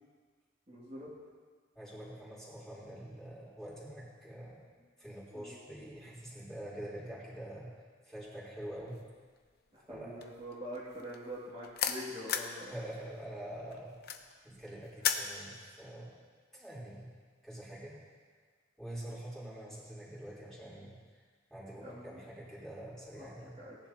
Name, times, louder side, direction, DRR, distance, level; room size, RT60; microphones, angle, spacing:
voice 1, 0.7-1.1 5.3-5.6 9.9-12.8 15.8-15.9 21.8-22.2 23.1-23.8, equal, 30° right, -8 dB, 2.3 m, -45 dB
voice 2, 1.8-7.7 8.1-9.0 9.9-10.2 12.7-14.0 14.4-16.1 16.5-17.1 17.4-18.0 18.8-20.9 21.5-23.6, right 1 dB, ahead, -8 dB, 3.7 m, -45 dB
sound 1, 9.0-9.4 9.7-12.6 12.9-15.3, left 8 dB, 50° left, 0.7 m, -35 dB
18.5 x 10.5 x 2.9 m, 1.6 s
head